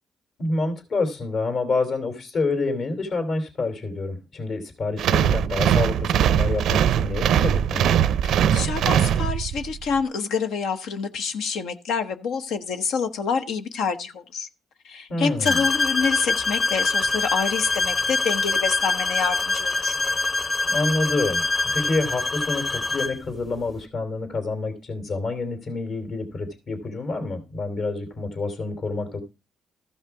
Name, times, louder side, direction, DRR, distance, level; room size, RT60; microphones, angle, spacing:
voice 1, 0.4-8.0 15.1-15.6 20.6-21.4 21.7-29.2, left 3 dB, 60° left, 3.1 m, -28 dB
sound 1, 5.0-9.7, right 9 dB, 75° right, 0.5 m, -21 dB
voice 2, 8.2-14.5 14.8-20.0, left 5 dB, 80° left, 1.1 m, -27 dB
sound 2, 15.5-23.2, left 3 dB, 30° left, 1.1 m, -24 dB
14.0 x 5.6 x 4.7 m
cardioid pair, 90°, 0 cm